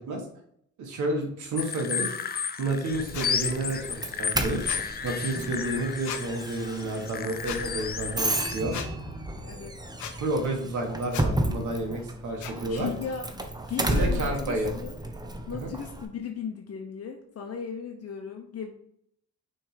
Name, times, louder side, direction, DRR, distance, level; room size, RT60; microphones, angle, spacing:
voice 1, 0.8-2.1 2.6-4.7 5.0-8.8 10.2-12.9 13.9-14.7 15.5-15.7, right 2 dB, 75° right, 1 dB, 1.5 m, -30 dB
sound 1, 1.6-8.6, left 6 dB, 30° left, 0.5 m, -33 dB
Doorbell, 2.9-16.1, right 1 dB, 15° right, 0.8 m, -33 dB
sound 2, 3.1-3.3 4.7-4.9 6.0-6.2 7.4-7.6 8.7-8.9 10.0-10.2 11.1-11.3 12.4-12.5, left 9 dB, 80° left, 0.8 m, -36 dB
voice 2, 9.4-9.8 12.7-15.0 15.5-18.7, left 6 dB, 50° left, 3 dB, 0.9 m, -37 dB
6.3 x 3.6 x 4.9 m, 0.69 s
cardioid pair, 90°, 30 cm